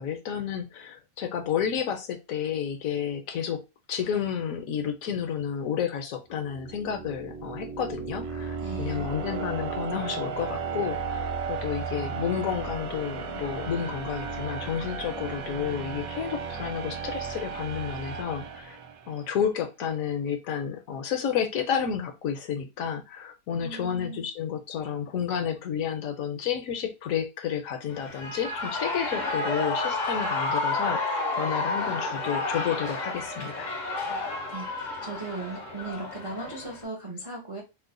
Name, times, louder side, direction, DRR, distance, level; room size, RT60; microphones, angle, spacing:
voice 1, 0.0-3.6 3.9-18.8 19.1-33.7, left 8 dB, 70° left, 6 dB, 1.0 m, -31 dB
sound 1, 6.4-19.3, right 5 dB, 70° right, 1.0 m, -35 dB
voice 2, 8.6-9.1 23.6-24.2 34.1-37.6, right 3 dB, 45° right, -1 dB, 0.4 m, -38 dB
Shout / Cheering, 27.9-36.8, left 3 dB, 55° left, 0.5 m, -31 dB
3.0 x 2.1 x 3.7 m, 0.26 s
omnidirectional pair, 1.6 m